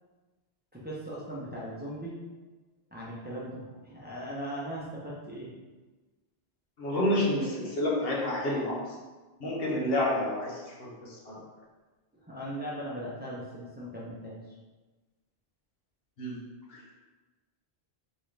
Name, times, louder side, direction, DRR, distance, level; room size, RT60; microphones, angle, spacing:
voice 1, 0.7-2.2 2.9-5.5 12.2-14.5, equal, 10° right, -6 dB, 0.8 m, -39 dB
voice 2, 6.8-8.9 9.4-11.4 16.2-16.4 16.7-16.8, left 1 dB, 70° left, -4 dB, 1.3 m, -29 dB
4.2 x 3.7 x 3.3 m, 1.2 s
omnidirectional pair, 1.1 m